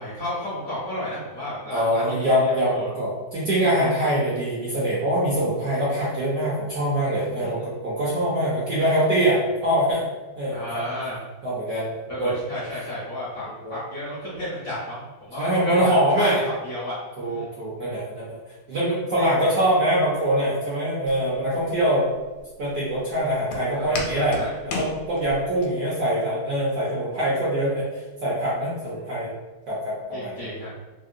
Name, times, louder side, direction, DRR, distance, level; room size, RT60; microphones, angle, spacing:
voice 1, 0.0-2.9 7.3-7.5 10.5-11.2 12.1-16.3 16.6-17.0 17.2-17.5 23.7-24.6 30.1-30.7, left 1 dB, 65° left, -8 dB, 0.9 m, -33 dB
voice 2, 1.7-10.0 10.4-10.8 11.4-12.3 13.6-13.7 15.3-16.4 17.2-18.4 18.7-22.1 22.6-24.4 24.6-29.3 29.7-30.5, right 1 dB, 65° right, -8 dB, 1.0 m, -23 dB
Walk footsteps, 21.1-25.7, left 3 dB, 80° left, 1.4 m, -35 dB
3.6 x 2.1 x 2.5 m, 1.2 s
omnidirectional pair, 2.3 m